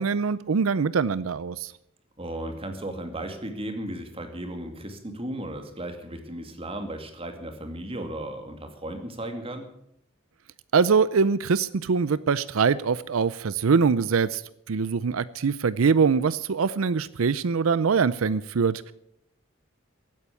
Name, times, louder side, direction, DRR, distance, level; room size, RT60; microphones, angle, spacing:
voice 1, 0.0-1.7 10.7-14.4 14.7-18.9, right 5 dB, 90° right, 17 dB, 0.5 m, -23 dB
voice 2, 2.2-9.7, right 1 dB, 30° right, 6 dB, 2.3 m, -35 dB
16.0 x 9.1 x 8.4 m, 0.74 s
head